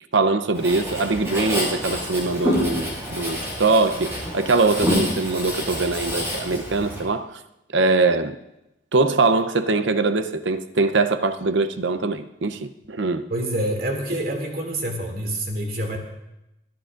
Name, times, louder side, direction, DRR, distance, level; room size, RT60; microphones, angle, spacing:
voice 1, 0.1-7.4 7.7-8.4 8.9-13.3, right 3 dB, 85° right, 0.8 m, -22 dB
Writing, 0.5-7.0, equal, 15° right, 6.0 m, -27 dB
voice 2, 4.8-5.2 13.3-16.0, right 1 dB, 55° right, 2.5 m, -27 dB
27.0 x 10.5 x 2.6 m
head